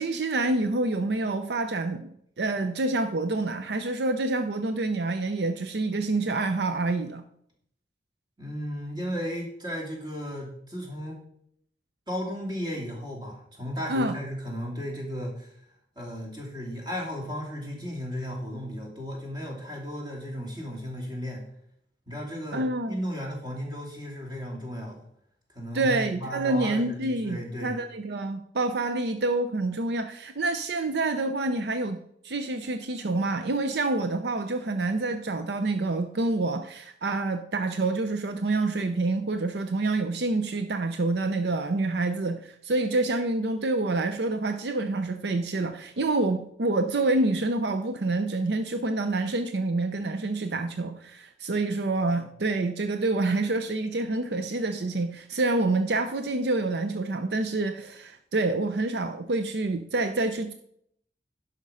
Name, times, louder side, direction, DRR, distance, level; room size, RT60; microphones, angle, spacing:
voice 1, 0.0-7.2 13.9-14.2 22.5-23.0 25.7-60.5, right 2 dB, 70° right, 8 dB, 0.6 m, -27 dB
voice 2, 8.4-11.2 12.1-15.5 16.0-21.4 22.1-25.0 25.5-27.7, equal, 25° right, -2 dB, 2.8 m, -35 dB
11.5 x 5.2 x 5.5 m, 0.71 s
head